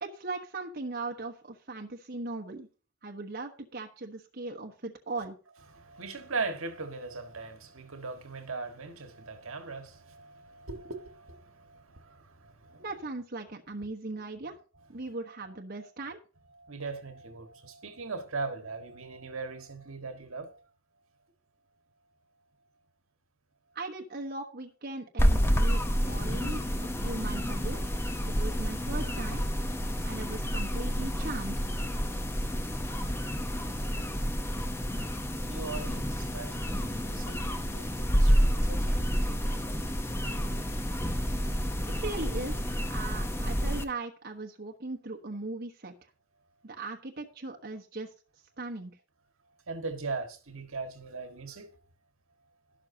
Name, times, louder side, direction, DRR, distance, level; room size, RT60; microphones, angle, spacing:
voice 1, 0.0-2.7 3.0-5.4 12.8-14.6 14.9-16.2 23.7-27.8 28.3-29.5 30.0-31.7 41.9-46.1 46.6-48.1 48.6-48.9, right 2 dB, 45° right, 1.2 m, -39 dB
voice 2, 5.7-12.8 16.6-20.6 35.5-39.4 49.7-51.7, right 4 dB, 70° right, 1.7 m, -39 dB
sound 1, 25.2-43.8, equal, 10° left, 0.8 m, -29 dB
12.5 x 12.0 x 2.8 m
head